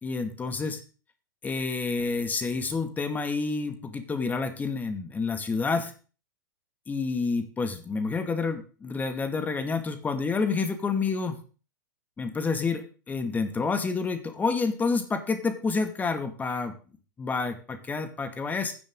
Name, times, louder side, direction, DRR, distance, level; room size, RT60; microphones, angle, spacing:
voice 1, 0.0-0.8 1.4-5.9 6.9-11.4 12.2-16.7 17.2-18.7, left 4 dB, 15° left, 8 dB, 2.3 m, -29 dB
16.5 x 10.0 x 3.9 m, 0.38 s
figure-of-eight pair, 100°, 10 cm